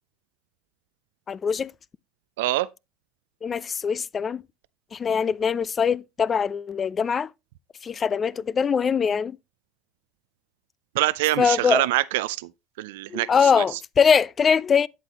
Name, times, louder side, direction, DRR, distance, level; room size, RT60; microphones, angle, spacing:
voice 1, 1.3-1.7 3.4-4.4 4.9-7.3 7.8-9.4 11.4-11.9 13.1-14.9, left 6 dB, 30° left, 0.4 m, -22 dB
voice 2, 2.4-2.7 10.9-12.5 12.8-13.8, right 17 dB, 90° right, 0.4 m, -25 dB
9.0 x 8.2 x 2.9 m
supercardioid pair, 110°, 0 cm